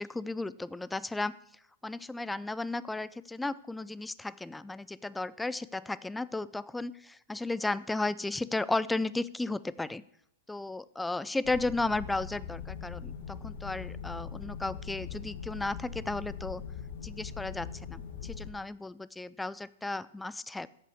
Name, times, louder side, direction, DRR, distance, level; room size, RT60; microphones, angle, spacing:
voice 1, 0.0-1.4 1.8-10.0 10.5-16.6 17.0-20.7, left 2 dB, 5° left, 17 dB, 0.4 m, -34 dB
sound 1, 11.4-18.5, left 7 dB, 55° left, 1.4 m, -41 dB
14.5 x 5.7 x 7.0 m, 0.77 s
hypercardioid pair, 150°, 0 cm